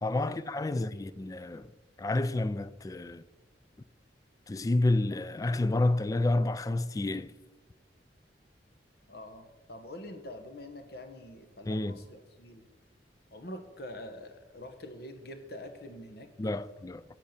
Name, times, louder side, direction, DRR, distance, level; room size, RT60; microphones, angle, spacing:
voice 1, 0.0-1.7 2.0-3.2 4.5-7.3 11.7-12.0 16.4-17.0, left 2 dB, 20° left, 0.3 m, -29 dB
voice 2, 0.6-1.0 9.1-12.6 13.3-16.3, left 1 dB, 60° left, 1.2 m, -45 dB
8.3 x 7.5 x 6.7 m
head